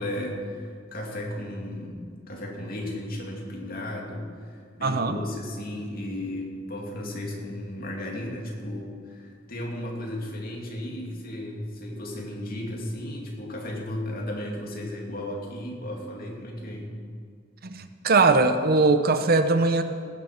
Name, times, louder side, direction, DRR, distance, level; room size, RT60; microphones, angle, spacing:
voice 1, 0.0-17.0, left 1 dB, 50° left, -1 dB, 2.6 m, -34 dB
voice 2, 4.8-5.2 17.6-19.8, right 3 dB, 50° right, 9 dB, 0.7 m, -21 dB
18.0 x 7.4 x 5.9 m, 2.1 s
head